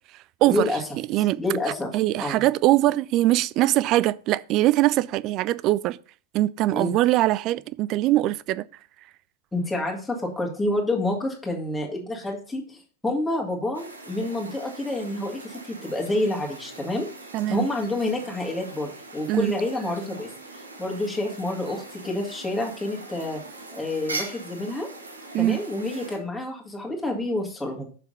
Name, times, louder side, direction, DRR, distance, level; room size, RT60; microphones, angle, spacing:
voice 1, 0.5-0.8 1.4-1.9 2.2-2.4 6.7-6.9 9.5-17.1 17.5-20.3 20.8-23.4 23.7-24.9 25.4-27.9, left 1 dB, 5° left, 2.1 m, -28 dB
voice 2, 1.1-1.4 1.9-6.0 6.3-8.7 17.3-17.7 19.3-19.5 25.3-25.6, right 16 dB, 40° right, 0.4 m, -22 dB
sound 1, 13.7-26.2, right 2 dB, 75° right, 1.6 m, -41 dB
7.0 x 5.8 x 5.5 m
figure-of-eight pair, 90°, 0 cm